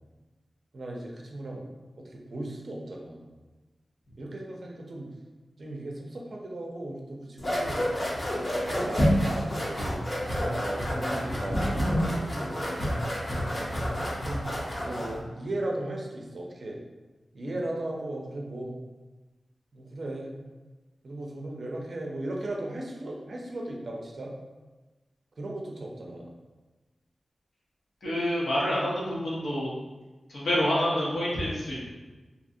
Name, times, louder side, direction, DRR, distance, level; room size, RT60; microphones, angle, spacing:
voice 1, 0.7-1.7 2.0-3.2 4.2-5.1 5.6-7.8 8.7-10.0 10.4-12.9 14.2-14.5 14.7-16.8 17.3-18.8 19.7-20.4 21.0-24.3 25.4-26.3, right 1 dB, 55° right, -1 dB, 0.5 m, -36 dB
sound 1, 7.4-15.2, equal, 30° left, 0.6 m, -29 dB
voice 2, 28.0-29.7 30.3-31.8, equal, 80° left, -6 dB, 0.9 m, -27 dB
2.7 x 2.5 x 2.6 m, 1.2 s
wide cardioid pair, 105°, 0 cm